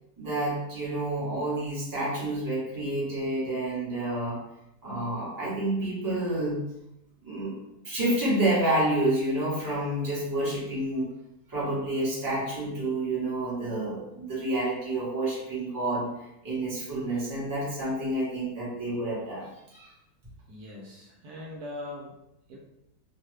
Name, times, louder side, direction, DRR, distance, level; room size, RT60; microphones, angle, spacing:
voice 1, 0.2-4.4 4.8-6.6 7.2-7.6 7.8-11.1 11.5-16.1 16.4-19.9, right 1 dB, 15° right, -8 dB, 0.9 m, -29 dB
voice 2, 20.5-22.1 22.5-22.6, left 2 dB, 75° right, -2 dB, 1.1 m, -41 dB
2.9 x 2.2 x 3.2 m, 0.86 s
omnidirectional pair, 1.7 m